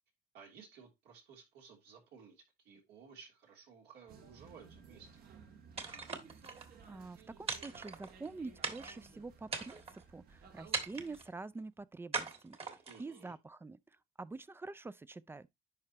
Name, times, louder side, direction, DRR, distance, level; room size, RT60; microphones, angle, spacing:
voice 1, 0.3-5.1 12.9-13.3, right 6 dB, 80° right, 3.0 m, -56 dB
sound 1, 4.1-11.2, right 6 dB, 65° right, 1.5 m, -57 dB
sound 2, 5.8-6.7 7.5-8.3 8.6-9.1 9.5-10.0 10.7-11.3 12.1-13.0, right 4 dB, 35° right, 1.7 m, -40 dB
voice 2, 6.6-12.6 13.0-13.8 14.2-15.5, right 3 dB, 15° right, 0.4 m, -46 dB
10.5 x 4.8 x 2.9 m
cardioid pair, 110°, 17 cm